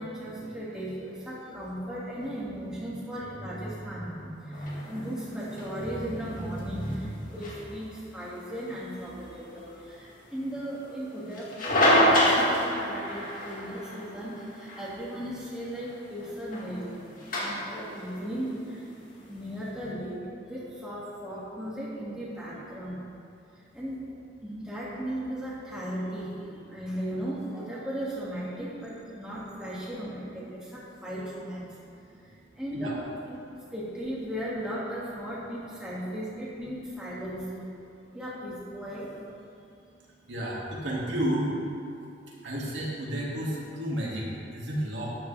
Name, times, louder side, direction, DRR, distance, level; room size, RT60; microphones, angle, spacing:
voice 1, 0.0-19.0 19.3-23.1 23.5-24.1 24.4-31.8 32.0-33.0 33.7-37.7 38.1-39.2, equal, 5° right, -9 dB, 2.4 m, -36 dB
sound 1, 4.5-19.7, equal, 50° left, 2.2 m, -30 dB
voice 2, 40.1-41.6 42.3-45.2, equal, 80° right, -5 dB, 2.4 m, -31 dB
12.5 x 10.0 x 3.5 m, 2.6 s
head